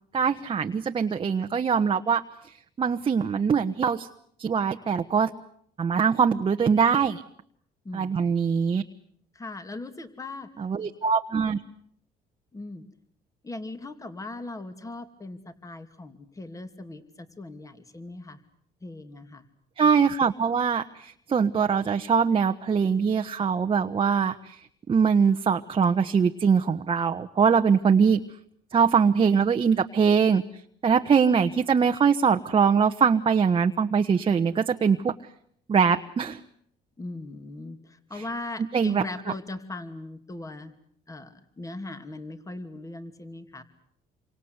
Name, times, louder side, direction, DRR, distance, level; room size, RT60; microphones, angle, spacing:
voice 1, 0.1-2.2 2.8-4.1 4.4-5.3 5.8-7.2 7.9-8.8 10.6-11.6 19.8-24.6 24.9-28.2 28.7-30.4 30.8-35.1 35.7-36.4 38.7-39.0, right 6 dB, 30° right, 6 dB, 1.2 m, -22 dB
voice 2, 7.8-8.4 9.3-10.5 12.5-12.9 13.4-18.4 18.8-19.5 37.0-40.7 41.1-43.6, left 2 dB, 20° left, 9 dB, 2.7 m, -39 dB
28.0 x 25.0 x 8.1 m, 0.69 s
cardioid pair, 110°, 17 cm